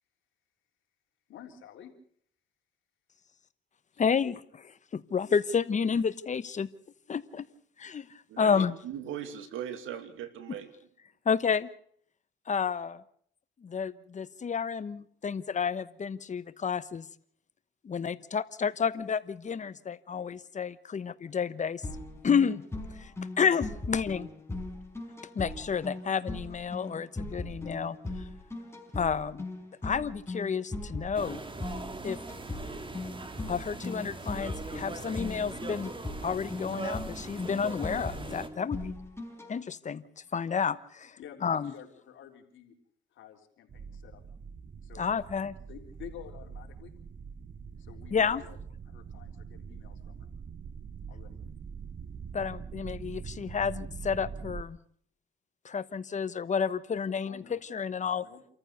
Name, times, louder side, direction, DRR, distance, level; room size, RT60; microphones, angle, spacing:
voice 1, 1.3-1.9 3.9-4.0 41.2-42.8 43.1-44.2 44.8-45.1 45.6-46.9 47.8-48.6 48.9-50.3 51.1-51.4 57.3-57.6 58.1-58.4, left 9 dB, 75° left, 3 dB, 3.6 m, -50 dB
voice 2, 4.0-6.7 7.1-7.4 7.8-8.1 8.4-8.7 11.2-11.7 12.5-13.0 13.6-17.1 17.8-21.9 22.2-22.6 23.0-23.1 23.4-24.3 25.3-28.0 28.9-29.5 29.8-31.4 32.0-32.2 33.5-35.9 36.2-38.9 39.5-40.0 40.3-41.7 45.0-45.6 48.1-48.4 52.3-54.8 55.6-58.2, left 6 dB, 40° left, 15 dB, 1.1 m, -30 dB
voice 3, 8.8-10.7, right 9 dB, 90° right, 10 dB, 2.5 m, -39 dB
sound 1, 21.8-39.5, left 2 dB, 15° left, 4.9 m, -39 dB
sound 2, 31.1-38.5, right 3 dB, 25° right, 2.3 m, -41 dB
sound 3, 43.7-54.6, right 6 dB, 40° right, 0.9 m, -43 dB
27.5 x 14.5 x 6.8 m, 0.62 s
cardioid pair, 90°, 20 cm